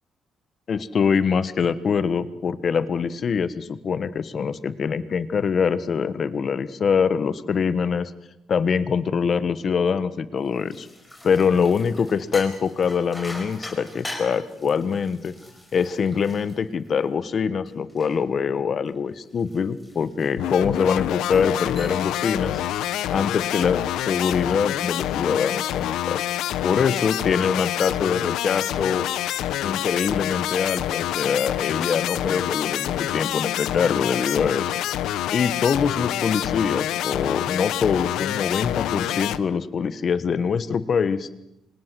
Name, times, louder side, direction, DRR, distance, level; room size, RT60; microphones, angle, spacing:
voice 1, 0.7-8.1 8.5-10.9 11.2-15.3 15.7-22.6 23.1-26.2 26.6-29.1 29.6-34.7 35.3-41.3, left 6 dB, 35° left, 15 dB, 1.2 m, -24 dB
sound 1, 10.4-17.2 17.7-20.7 21.2-21.5 21.8-22.2 22.6-22.9 24.0-24.6, left 1 dB, 10° left, 5.6 m, -42 dB
sound 2, 20.4-39.4, left 12 dB, 85° left, 1.0 m, -27 dB
28.0 x 26.5 x 7.7 m, 0.86 s
cardioid pair, 170°, 0 cm